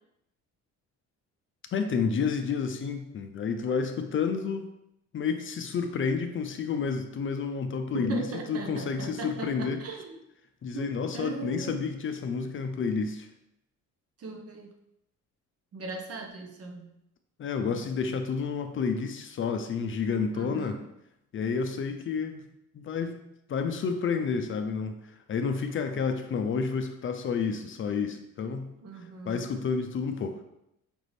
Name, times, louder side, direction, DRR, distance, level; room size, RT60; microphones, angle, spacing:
voice 1, 1.7-4.7 5.1-9.8 10.6-13.3 17.4-20.8 21.3-22.4 22.7-23.2 23.5-25.0 25.3-28.7 29.3-30.4, left 5 dB, 45° left, 6 dB, 0.4 m, -30 dB
voice 2, 7.9-10.2 10.7-11.9 14.2-14.7 15.7-16.9 17.5-18.1 20.3-20.9 28.8-29.5, right 4 dB, 50° right, 3 dB, 0.7 m, -39 dB
5.2 x 2.5 x 3.2 m, 0.83 s
cardioid pair, 90°, 30 cm